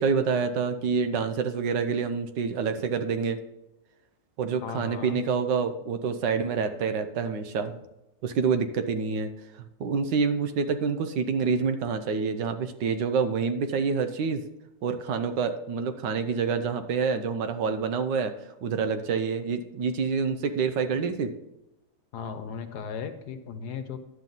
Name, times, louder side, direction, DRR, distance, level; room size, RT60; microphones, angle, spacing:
voice 1, 0.0-3.4 4.4-7.7 8.2-9.3 9.6-14.4 14.8-18.3 18.6-21.3, right 5 dB, 80° right, 9 dB, 1.5 m, -27 dB
voice 2, 4.6-5.2 22.1-24.0, left 6 dB, 65° left, 8 dB, 1.4 m, -36 dB
10.5 x 7.5 x 4.0 m, 0.93 s
omnidirectional pair, 1.9 m